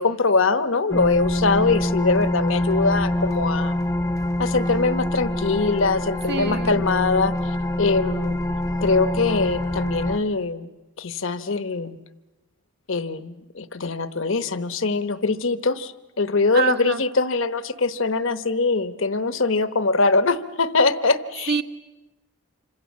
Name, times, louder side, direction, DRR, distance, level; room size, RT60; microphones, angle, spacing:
voice 1, 0.0-3.8 4.4-7.3 7.8-8.4 8.8-10.7 11.0-12.0 12.9-21.5, left 3 dB, 60° left, 12 dB, 1.0 m, -22 dB
sound 1, 0.9-10.2, left 1 dB, 15° left, 0.8 m, -25 dB
voice 2, 6.3-6.8 16.5-17.0 21.5-21.6, right 5 dB, 50° right, 8 dB, 1.2 m, -26 dB
27.5 x 25.5 x 7.4 m, 1.0 s
head